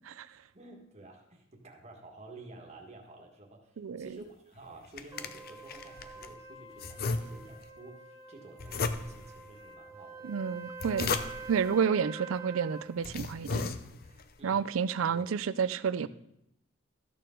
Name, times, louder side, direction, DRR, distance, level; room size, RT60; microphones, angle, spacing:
voice 1, 0.5-10.3 14.4-14.7 15.1-15.3 16.0-16.1, right 2 dB, 35° right, 0 dB, 1.6 m, -51 dB
voice 2, 3.8-4.1 10.2-11.2 11.5-13.7 14.4-16.1, right 6 dB, 85° right, 16 dB, 0.4 m, -30 dB
sound 1, 4.6-6.3 6.8-7.7 8.6-9.4 10.5-11.6 12.4-12.5 12.9-14.2, left 4 dB, 50° left, 0.6 m, -35 dB
Trumpet, 5.1-12.9, right 4 dB, 15° right, 1.0 m, -46 dB
13.5 x 6.6 x 3.8 m, 0.79 s
head